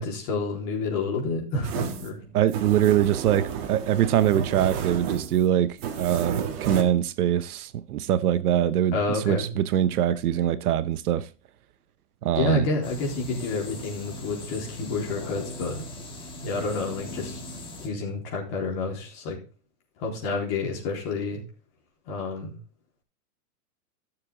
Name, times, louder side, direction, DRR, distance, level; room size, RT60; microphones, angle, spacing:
voice 1, 0.0-2.2 8.9-9.5 12.4-15.8 16.4-17.4 17.8-19.4 20.0-21.4 22.1-22.6, left 3 dB, 30° left, 3.9 m, -29 dB
sound 1, 1.6-6.8, right 8 dB, 40° right, 1.9 m, -32 dB
voice 2, 2.3-11.3 12.2-12.7, right 11 dB, 70° right, 0.9 m, -23 dB
sound 2, 12.8-17.9, left 1 dB, 10° left, 1.7 m, -39 dB
14.0 x 6.9 x 3.8 m
supercardioid pair, 165°, 47 cm